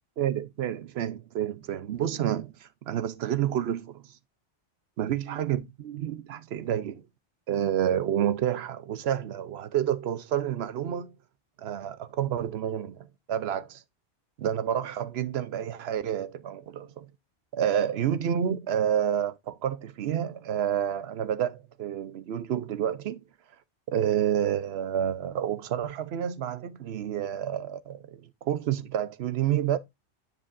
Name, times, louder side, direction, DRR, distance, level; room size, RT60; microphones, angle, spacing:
voice 1, 0.2-4.0 5.0-7.0 7.5-11.1 11.6-13.8 14.4-17.1 17.5-23.2 23.9-29.8, right 10 dB, 65° right, 0.9 m, -29 dB
9.8 x 5.2 x 2.5 m
omnidirectional pair, 1.2 m